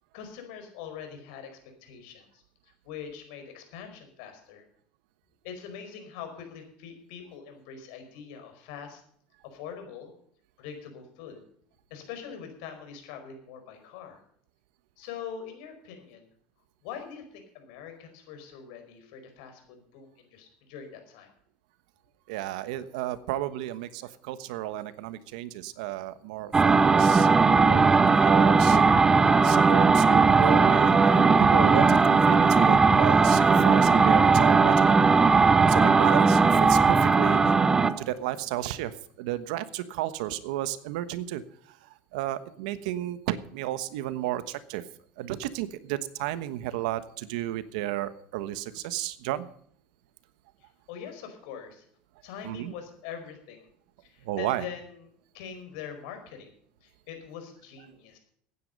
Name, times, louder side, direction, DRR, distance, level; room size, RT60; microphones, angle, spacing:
voice 1, 0.1-4.6 5.4-9.0 9.4-10.1 10.6-11.4 11.9-14.2 15.0-16.3 16.8-21.3 50.6-51.8 52.2-53.7 54.0-55.0 55.3-56.5 56.8-58.2, left 7 dB, 80° left, 6 dB, 4.8 m, -43 dB
voice 2, 22.3-27.3 27.7-28.9 29.4-34.9 35.7-37.6 37.9-41.4 41.7-44.8 45.2-49.5 52.4-52.7 54.2-54.6, right 14 dB, 85° right, 13 dB, 1.2 m, -32 dB
sound 1, 26.5-38.0, right 4 dB, 15° right, 0.6 m, -19 dB
15.5 x 9.8 x 5.3 m, 0.63 s
cardioid pair, 145°, 4 cm